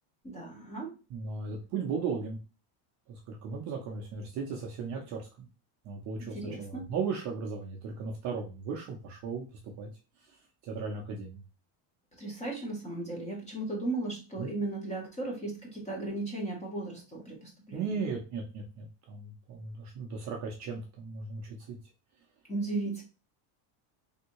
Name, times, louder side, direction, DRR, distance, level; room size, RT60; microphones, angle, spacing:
voice 1, 0.2-0.9 6.2-6.9 12.2-18.0 22.5-23.0, right 2 dB, 15° left, 0 dB, 0.6 m, -36 dB
voice 2, 1.1-2.4 3.1-5.5 5.8-9.4 9.8-9.9 10.6-11.4 14.4-14.5 17.7-21.8, right 5 dB, 40° right, 0 dB, 0.4 m, -36 dB
3.4 x 2.7 x 2.9 m, 0.31 s
cardioid pair, 180°, 50 cm